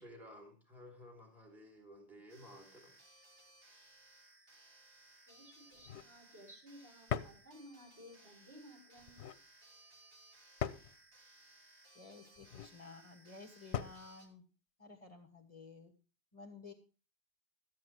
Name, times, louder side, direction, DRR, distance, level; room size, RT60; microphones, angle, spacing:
voice 1, 0.0-2.9, equal, ahead, 1 dB, 3.0 m, -55 dB
sound 1, 2.3-14.3, right 2 dB, 80° right, 3.0 m, -62 dB
voice 2, 5.3-9.2, equal, 65° right, -3 dB, 7.2 m, -57 dB
sound 2, 5.7-6.1 7.1-7.4 9.0-9.4 10.6-11.0 12.4-12.8 13.7-14.1, left 9 dB, 80° left, 1.0 m, -40 dB
voice 3, 11.9-14.4 14.8-15.9 16.3-16.7, left 3 dB, 35° left, 3 dB, 1.4 m, -54 dB
13.5 x 8.5 x 4.5 m, 0.33 s
omnidirectional pair, 1.1 m